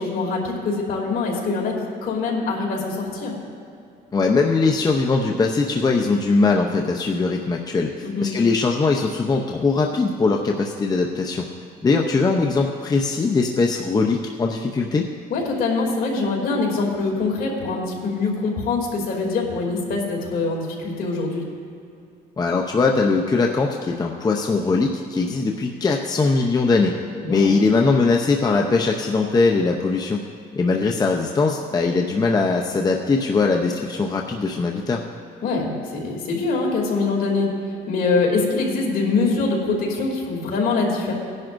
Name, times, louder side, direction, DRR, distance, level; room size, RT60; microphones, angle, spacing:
voice 1, 0.0-1.8 2.0-3.4 8.0-8.3 15.3-21.4 27.2-27.5 35.4-37.5 37.9-41.1, left 3 dB, 60° left, -1 dB, 2.8 m, -24 dB
voice 2, 4.1-11.5 11.8-15.1 22.4-27.0 27.3-30.2 30.6-35.0, left 4 dB, 25° left, 1 dB, 0.7 m, -21 dB
18.5 x 10.5 x 2.6 m, 2.5 s
cardioid pair, 110°, 17 cm